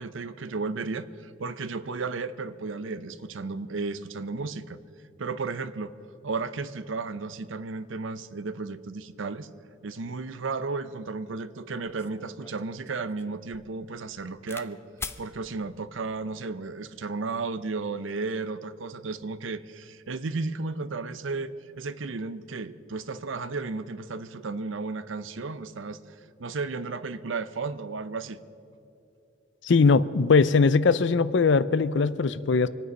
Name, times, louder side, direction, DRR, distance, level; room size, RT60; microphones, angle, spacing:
voice 1, 0.0-4.8 5.2-5.9 6.2-9.5 9.8-14.8 15.2-28.4, right 4 dB, 80° right, 13 dB, 0.7 m, -34 dB
sound 1, 11.3-11.4 11.9-14.7 15.0-15.2 16.1-16.5, left 4 dB, 15° left, 0.4 m, -43 dB
voice 2, 29.6-32.7, left 4 dB, 65° left, 16 dB, 0.5 m, -20 dB
25.5 x 9.5 x 5.4 m, 2.8 s
head